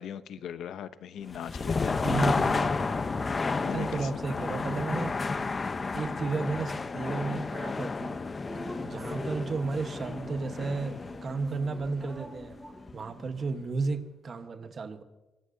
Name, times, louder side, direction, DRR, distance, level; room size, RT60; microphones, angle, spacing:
voice 1, 0.0-2.0 3.4-4.1, left 9 dB, 75° left, 0.7 m, -40 dB
sound 1, 1.3-13.1, left 4 dB, 30° left, 0.8 m, -32 dB
voice 2, 2.0-3.4 3.7-5.1 5.9-8.2 8.8-12.6 12.9-15.0, right 4 dB, 45° right, 1.2 m, -33 dB
Drip, 8.4-13.7, equal, ahead, 5.0 m, -46 dB
24.5 x 18.5 x 2.7 m
cardioid pair, 90°, 0 cm